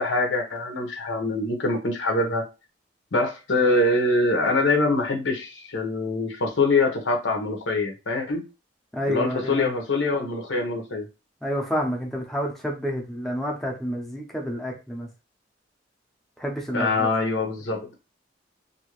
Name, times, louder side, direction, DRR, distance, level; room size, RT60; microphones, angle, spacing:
voice 1, 0.0-2.4 3.1-8.4 9.1-11.1 16.7-17.9, left 2 dB, 85° left, 2 dB, 0.9 m, -24 dB
voice 2, 8.9-9.7 11.4-15.1 16.4-17.1, equal, ahead, -1 dB, 0.6 m, -29 dB
2.7 x 2.6 x 3.0 m, 0.29 s
head